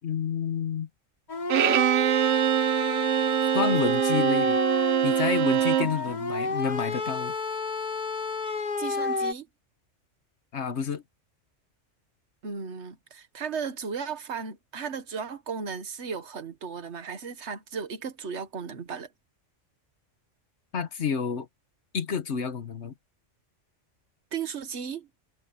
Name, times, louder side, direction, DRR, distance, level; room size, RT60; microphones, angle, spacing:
voice 1, 0.0-0.9 3.5-4.6 5.0-7.3 10.5-11.0 20.7-21.5 21.9-22.9, left 6 dB, 65° left, 1.4 m, -29 dB
sound 1, 1.3-9.3, left 3 dB, 35° left, 1.3 m, -30 dB
Bowed string instrument, 1.5-6.0, right 13 dB, 80° right, 0.9 m, -24 dB
voice 2, 8.8-9.5 12.4-19.1 24.3-25.1, right 6 dB, 65° right, 1.7 m, -35 dB
omnidirectional pair, 1.3 m